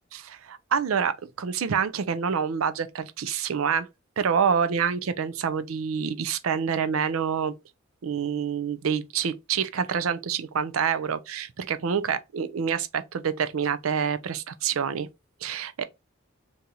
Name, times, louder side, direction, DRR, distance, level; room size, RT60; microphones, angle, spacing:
voice 1, 0.1-3.9 4.2-7.5 8.0-15.1 15.4-15.8, right 7 dB, 85° right, 0.5 m, -27 dB
2.9 x 2.7 x 3.7 m
head